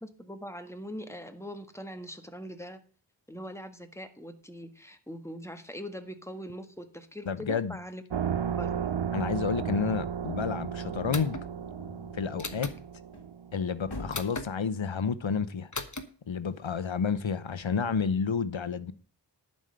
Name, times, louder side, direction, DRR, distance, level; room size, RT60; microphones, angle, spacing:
voice 1, 0.0-2.8 3.3-8.0 8.5-8.9, equal, 5° left, 1.5 m, -42 dB
voice 2, 7.3-7.8 9.1-11.4 12.1-12.7 13.5-15.7 16.3-18.9, left 6 dB, 80° left, 0.9 m, -30 dB
sound 1, 8.1-14.0, right 8 dB, 70° right, 0.6 m, -34 dB
sound 2, 11.1-11.5 12.4-12.8 14.1-14.5 15.7-16.0, left 3 dB, 40° left, 1.2 m, -36 dB
sound 3, 11.5-13.4 13.8-14.5, left 2 dB, 55° left, 1.6 m, -45 dB
11.0 x 5.4 x 7.9 m
wide cardioid pair, 40°, 45 cm